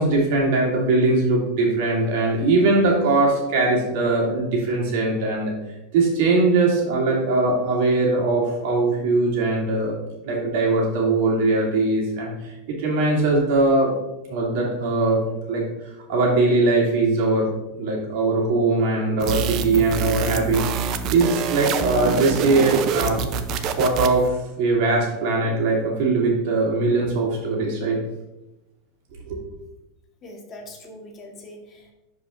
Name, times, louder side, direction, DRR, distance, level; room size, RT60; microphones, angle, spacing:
voice 1, 0.0-5.5 5.9-9.9 10.2-12.3 12.7-13.9 14.3-15.2 15.5-15.6 16.1-17.5 17.8-20.7 21.1-23.2 23.8-28.0 29.3-29.4, right 3 dB, 65° right, -2 dB, 2.5 m, -21 dB
sound 1, 19.2-24.3, right 6 dB, 45° right, 0.6 m, -26 dB
voice 2, 30.2-31.9, left 1 dB, 30° left, 1 dB, 1.4 m, -42 dB
10.5 x 5.0 x 2.6 m, 0.97 s
supercardioid pair, 135°, 0 cm